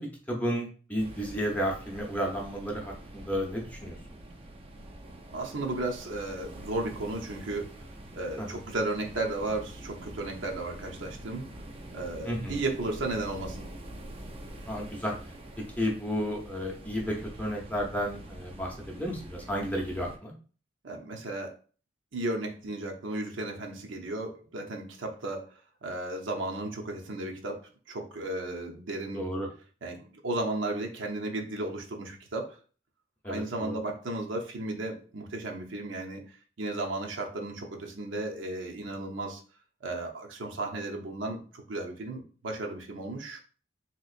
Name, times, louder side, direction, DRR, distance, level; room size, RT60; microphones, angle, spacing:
voice 1, 0.0-4.0 8.4-8.6 12.2-12.6 14.7-15.1 15.8-20.3 29.1-29.5 33.2-33.8, equal, 10° left, -1 dB, 0.6 m, -32 dB
sound 1, 1.0-20.2, right 1 dB, 30° right, 0.4 m, -45 dB
voice 2, 5.3-7.7 8.2-11.5 11.9-13.7 20.8-21.5 22.1-25.5 25.8-27.6 27.9-29.2 29.8-32.6 33.3-36.2 36.6-39.4 39.8-43.4, right 2 dB, 75° right, 1 dB, 0.7 m, -34 dB
3.5 x 2.9 x 2.4 m, 0.39 s
head